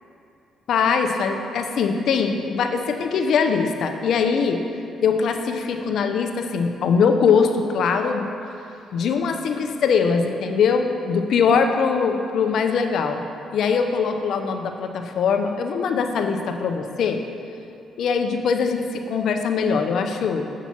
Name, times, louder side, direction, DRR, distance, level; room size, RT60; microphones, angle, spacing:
voice 1, 0.7-4.6 5.0-8.3 8.9-13.2 13.5-17.2 18.0-20.5, left 5 dB, 70° left, 5 dB, 0.5 m, -22 dB
7.0 x 6.0 x 4.3 m, 2.7 s
cardioid pair, 90°, 0 cm